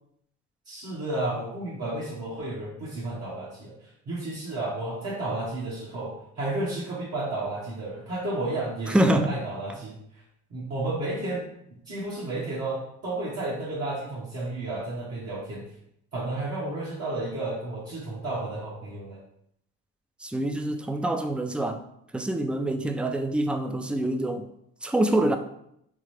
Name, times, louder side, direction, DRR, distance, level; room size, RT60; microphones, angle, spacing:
voice 1, 0.6-10.2 10.5-15.6 16.1-19.2, right 2 dB, 60° right, 1.3 m, -32 dB
voice 2, 8.9-9.4 20.2-21.8 22.1-24.5 24.8-25.4, right 1 dB, 5° right, 0.3 m, -25 dB
3.8 x 3.2 x 3.2 m
cardioid pair, 90°, 30 cm